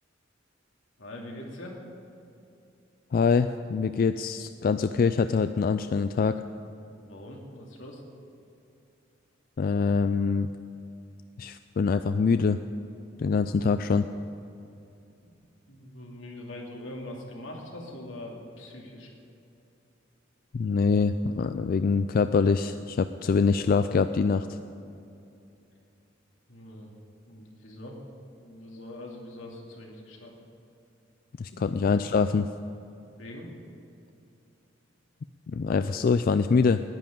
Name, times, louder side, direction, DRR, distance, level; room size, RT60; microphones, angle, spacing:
voice 1, 1.0-1.8 7.0-8.0 15.2-15.3 15.7-19.1 26.5-26.9 27.3-28.0 28.4-30.3 31.7-31.8 33.2-33.5, left 1 dB, 85° left, -1 dB, 2.6 m, -42 dB
voice 2, 3.1-6.4 9.6-10.5 11.4-12.6 13.2-14.1 20.5-24.6 31.4-32.5 35.5-36.8, left 5 dB, 50° left, 10 dB, 0.3 m, -24 dB
10.5 x 10.0 x 9.0 m, 2.7 s
head